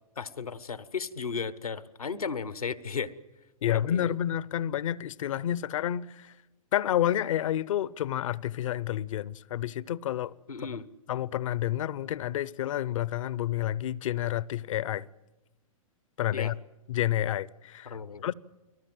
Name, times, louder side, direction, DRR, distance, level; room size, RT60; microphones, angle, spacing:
voice 1, 0.2-3.1 3.7-4.1 10.5-10.9 16.3-16.5 17.8-18.2, left 5 dB, 90° left, 1.2 m, -35 dB
voice 2, 3.6-6.3 6.7-10.3 11.1-15.1 16.2-16.5 16.9-18.0 18.2-18.3, left 11 dB, 65° left, 0.8 m, -29 dB
29.5 x 19.5 x 7.7 m
hypercardioid pair, 110°, 18 cm